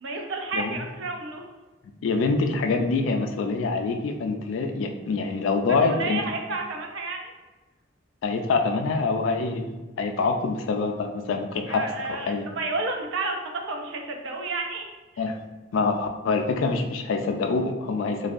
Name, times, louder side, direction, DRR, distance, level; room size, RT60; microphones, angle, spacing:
voice 1, 0.0-1.5 5.9-7.3 11.7-13.4 13.7-15.2, right 3 dB, 75° right, 3 dB, 0.4 m, -31 dB
voice 2, 2.0-6.2 8.2-11.8 12.3-12.5 15.2-15.4 15.7-18.3, left 4 dB, 80° left, 5 dB, 0.3 m, -25 dB
2.6 x 2.2 x 2.4 m, 1.2 s
head